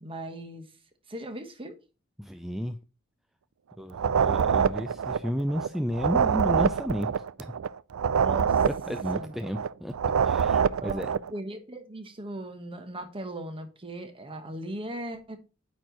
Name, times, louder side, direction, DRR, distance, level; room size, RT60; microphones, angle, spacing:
voice 1, 0.0-0.7 1.1-1.8 8.2-8.7 9.1-9.4 10.7-11.0 11.3-15.4, right 1 dB, 25° right, 1.2 m, -38 dB
voice 2, 2.2-2.8 3.8-7.5 8.6-9.9 10.2-11.1, equal, ahead, 0.3 m, -32 dB
sound 1, 3.9-5.7 5.9-9.7 9.9-11.3, right 7 dB, 75° right, 0.4 m, -25 dB
8.9 x 4.7 x 3.9 m
head